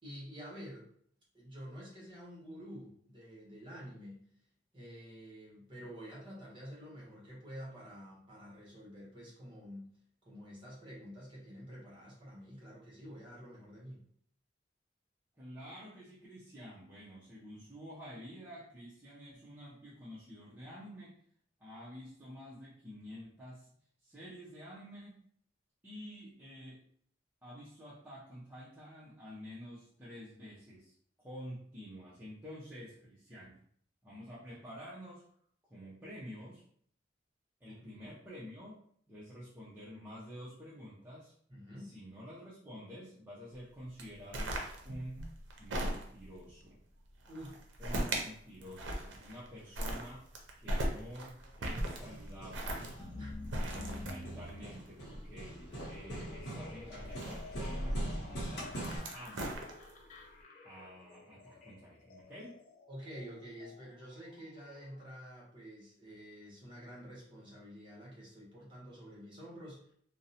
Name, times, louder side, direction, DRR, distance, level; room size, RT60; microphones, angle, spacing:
voice 1, 0.0-0.9 1.3-4.2 4.7-9.9 10.2-14.0 37.7-37.8 41.5-41.9 47.3-47.6 53.2-53.3 62.9-69.9, equal, 25° right, -5 dB, 1.0 m, -49 dB
voice 2, 15.4-21.2 21.6-23.7 24.0-25.2 25.8-26.8 27.4-33.6 34.0-35.2 35.7-36.6 37.6-41.3 41.8-44.6 44.8-45.3 45.6-46.8 47.8-50.2 50.6-52.9 53.5-59.5 60.6-62.6, equal, 10° right, -10 dB, 0.5 m, -49 dB
sound 1, 44.0-46.4 47.2-48.3 48.6-49.5 49.7-55.9 57.0-57.8 58.6-60.1, right 1 dB, 85° right, 0.5 m, -38 dB
Hammer, 51.4-59.0, right 1 dB, 70° left, 0.7 m, -42 dB
sound 2, 52.5-65.1, left 2 dB, 45° left, 0.3 m, -51 dB
2.5 x 2.0 x 2.7 m, 0.62 s
head